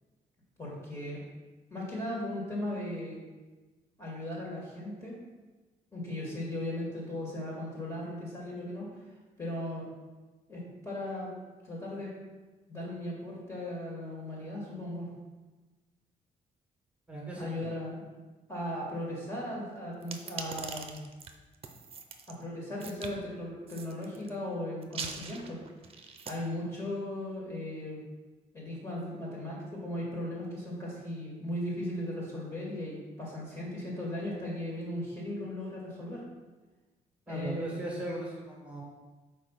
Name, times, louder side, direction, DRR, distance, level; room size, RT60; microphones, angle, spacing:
voice 1, 0.6-1.2 1.7-3.2 4.0-5.1 5.9-9.0 9.4-9.9 10.5-11.3 11.6-12.1 12.7-15.1 17.3-18.0 18.5-21.0 22.3-25.6 26.2-28.0 28.5-36.2 37.3-37.8, left 1 dB, 20° left, -5 dB, 2.3 m, -37 dB
voice 2, 17.1-17.7 37.3-38.8, right 1 dB, 10° right, -4 dB, 1.9 m, -38 dB
sound 1, 20.0-22.3 22.8-23.1 23.7-24.3 24.8-26.3, right 5 dB, 40° right, 0.7 m, -42 dB
5.0 x 4.5 x 5.7 m, 1.2 s
cardioid pair, 95°, 15 cm